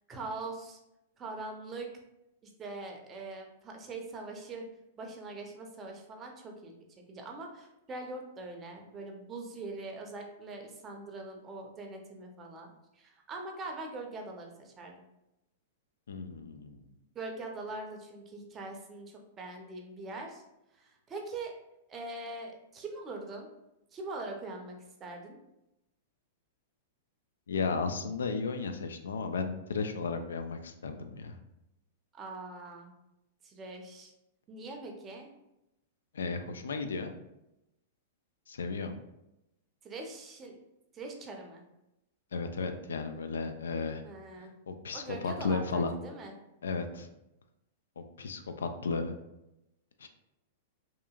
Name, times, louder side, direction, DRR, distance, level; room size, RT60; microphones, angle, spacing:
voice 1, 0.1-0.8 1.2-1.9 2.6-4.7 5.0-6.7 7.1-15.0 17.1-20.4 20.7-21.5 21.9-23.5 23.9-25.4 32.1-32.9 33.4-34.1 34.5-35.3 39.8-40.6 40.9-41.6 44.0-44.5 44.9-46.3, right 2 dB, 25° right, 2 dB, 0.5 m, -42 dB
voice 2, 16.1-16.8 27.5-31.4 36.1-37.1 38.5-39.0 42.3-44.0 44.4-45.9 46.6-47.1 48.0-49.2 50.0-50.1, left 4 dB, 85° left, 7 dB, 0.3 m, -34 dB
2.8 x 2.4 x 2.3 m, 0.89 s
hypercardioid pair, 120°, 0 cm